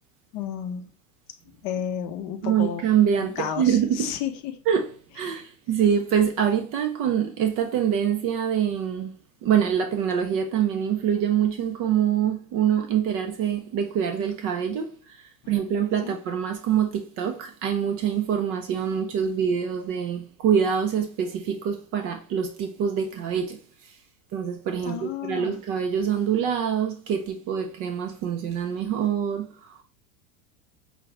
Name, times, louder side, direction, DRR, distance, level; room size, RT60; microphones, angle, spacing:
voice 1, 0.3-0.9 1.6-2.8 3.2-4.6 15.4-15.5 16.0-16.2 24.8-25.6, left 9 dB, 40° left, 0.6 m, -32 dB
voice 2, 2.4-4.2 4.7-9.1 9.4-24.0 24.3-29.8, right 8 dB, 30° right, 0.4 m, -25 dB
4.6 x 2.5 x 3.2 m
figure-of-eight pair, 85°, 46 cm